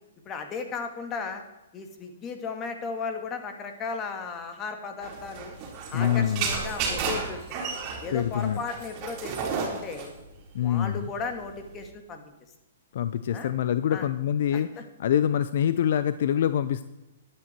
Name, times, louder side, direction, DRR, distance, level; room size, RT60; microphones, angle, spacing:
voice 1, 0.3-1.4 1.7-5.5 5.9-7.6 8.0-10.1 10.6-12.3 13.3-13.5 13.9-14.1 14.5-14.8, left 5 dB, 25° left, 6 dB, 2.0 m, -35 dB
sound 1, 5.0-11.9, right 5 dB, 30° right, 3.7 m, -33 dB
voice 2, 5.9-6.5 8.1-8.6 10.5-11.1 12.9-14.7 15.0-16.8, left 10 dB, 60° left, 13 dB, 0.6 m, -25 dB
13.0 x 11.0 x 4.5 m, 0.98 s
hypercardioid pair, 145°, 0 cm